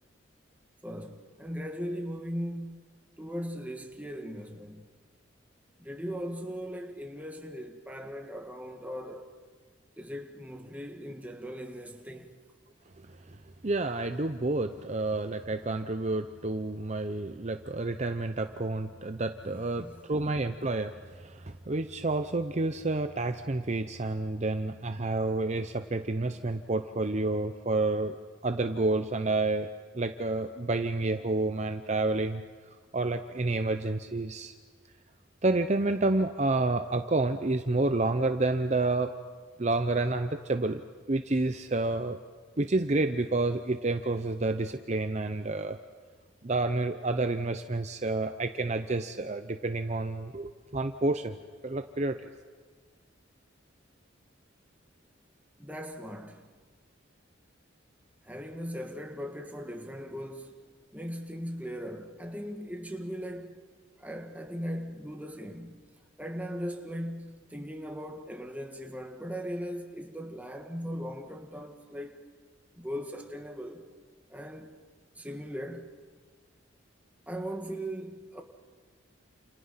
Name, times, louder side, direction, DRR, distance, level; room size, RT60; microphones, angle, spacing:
voice 1, 0.8-4.8 5.8-9.4 10.0-12.3 19.5-20.1 55.6-56.5 58.2-60.5 60.9-63.7 64.0-65.9 66.2-72.2 72.7-73.9 74.3-74.8 75.1-76.0 77.3-78.4, equal, 10° right, 1.8 m, -39 dB
voice 2, 13.6-28.2 28.4-29.7 29.9-32.4 32.9-34.5 35.4-39.1 39.6-40.8 41.1-42.2 42.6-45.8 46.4-51.4 51.6-52.2, right 2 dB, 35° right, 0.7 m, -29 dB
29.0 x 28.5 x 5.8 m
head